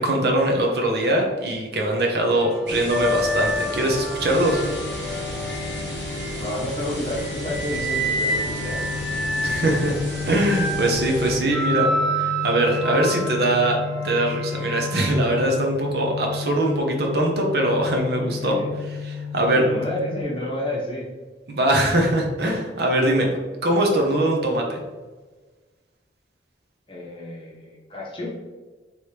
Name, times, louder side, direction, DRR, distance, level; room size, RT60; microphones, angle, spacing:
voice 1, 0.0-4.6 9.4-10.0 10.3-11.9 12.2-13.8 14.0-18.5 19.0-19.6 21.5-23.3 23.6-24.8, right 1 dB, 60° right, 1 dB, 0.7 m, -22 dB
sound 1, 2.3-6.7 7.2-15.2 16.3-16.5, right 1 dB, ahead, 0.3 m, -29 dB
sound 2, 2.7-11.4, right 1 dB, 80° right, 1.2 m, -35 dB
sound 3, 4.3-20.2, left 5 dB, 70° left, 0.6 m, -33 dB
voice 2, 6.4-9.5 18.2-18.8 19.5-21.1 26.9-28.3, left 1 dB, 30° left, -3 dB, 0.8 m, -31 dB
4.2 x 3.1 x 3.3 m, 1.3 s
head